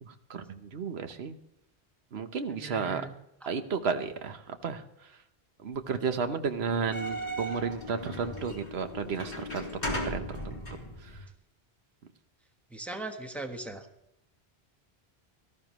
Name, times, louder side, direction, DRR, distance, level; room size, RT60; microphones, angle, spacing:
voice 1, 0.0-1.4 2.1-3.0 3.5-5.1 5.6-10.6 11.0-11.2, right 5 dB, 80° right, 8 dB, 1.2 m, -33 dB
voice 2, 2.5-3.1 12.7-13.9, right 2 dB, ahead, 4 dB, 1.2 m, -39 dB
sound 1, 6.7-11.3, equal, 45° left, 2.8 m, -37 dB
18.5 x 13.0 x 3.1 m, 0.81 s
omnidirectional pair, 1.1 m